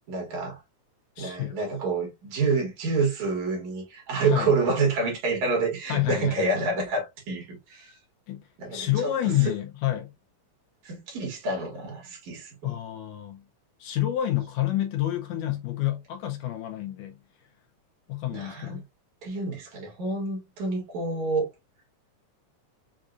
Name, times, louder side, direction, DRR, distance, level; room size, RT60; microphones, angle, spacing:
voice 1, 0.1-0.6 1.2-8.0 8.6-9.5 10.8-12.7 18.3-18.8 19.2-21.5, right 3 dB, 65° right, 3.2 m, -28 dB
voice 2, 1.2-1.5 4.1-4.5 5.9-6.5 8.3-10.1 12.6-13.5 13.8-17.2 18.1-18.8, left 13 dB, 75° left, 1.9 m, -29 dB
6.5 x 2.6 x 2.4 m
omnidirectional pair, 3.6 m